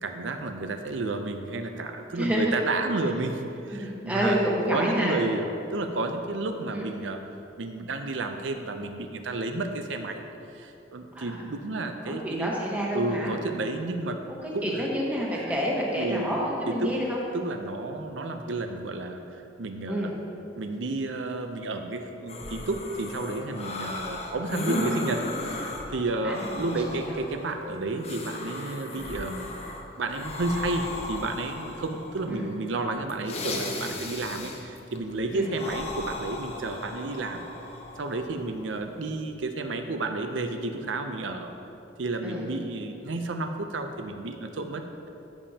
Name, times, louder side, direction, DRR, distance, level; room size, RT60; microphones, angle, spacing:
voice 1, 0.0-4.4 4.6-7.2 7.6-10.3 10.5-12.5 12.9-14.2 14.5-14.9 15.3-15.5 15.9-16.3 16.7-16.9 17.3-19.2 19.6-20.1 20.6-29.5 30.0-37.4 38.0-41.5 42.0-44.8, right 2 dB, 85° right, 6 dB, 0.6 m, -31 dB
voice 2, 2.1-2.5 3.7-5.2 6.7-6.8 11.1-11.3 12.0-13.3 14.4-17.2 19.9-20.1 24.5-24.6 26.2-26.7 27.1-27.2 32.3-32.5 35.3-35.5 42.2-42.5, equal, 10° right, -4 dB, 1.2 m, -28 dB
sound 1, 22.3-39.3, left 1 dB, 35° left, 0.8 m, -36 dB
Wind instrument woodwind instrument, 22.3-28.8, right 1 dB, 40° right, 2.0 m, -47 dB
13.5 x 7.2 x 2.9 m, 2.8 s
head